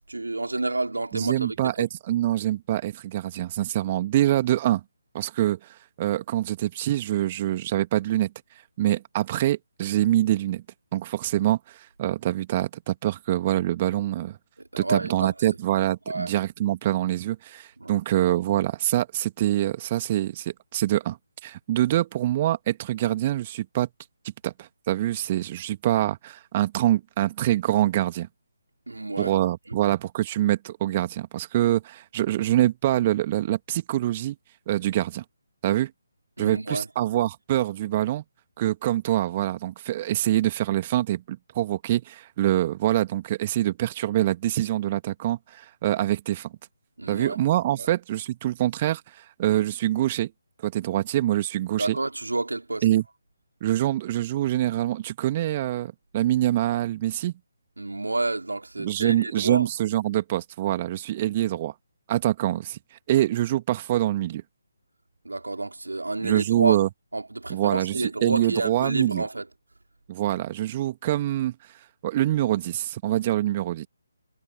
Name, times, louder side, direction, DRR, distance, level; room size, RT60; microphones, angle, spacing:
voice 1, 0.1-1.8 14.7-15.5 16.1-16.3 17.8-18.0 28.9-29.3 36.4-36.9 47.0-47.4 47.8-47.9 51.8-52.9 57.8-59.7 65.2-66.8 67.1-69.5, right 2 dB, 70° right, 2.9 m, -29 dB
voice 2, 1.1-4.8 5.1-8.3 8.8-10.6 10.9-14.4 14.8-23.9 24.4-28.3 29.2-34.4 34.7-35.2 35.6-35.9 36.4-38.2 38.6-46.5 47.1-50.3 50.6-52.0 52.8-53.0 53.6-57.3 58.8-61.7 62.1-64.4 66.2-66.9 67.5-69.2 70.1-71.5 72.0-73.9, right 13 dB, 25° right, 2.1 m, -25 dB
figure-of-eight pair, 145°, 0 cm